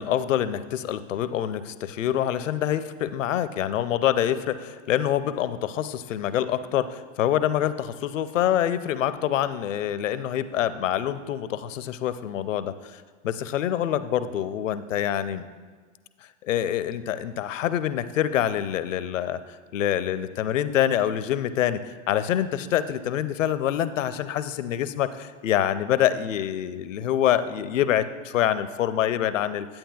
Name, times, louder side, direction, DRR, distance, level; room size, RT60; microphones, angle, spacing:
voice 1, 0.0-15.5 16.4-19.4 19.7-29.7, left 11 dB, 80° left, 14 dB, 0.5 m, -26 dB
10.5 x 8.7 x 2.3 m, 1.4 s
hypercardioid pair, 95°, 38 cm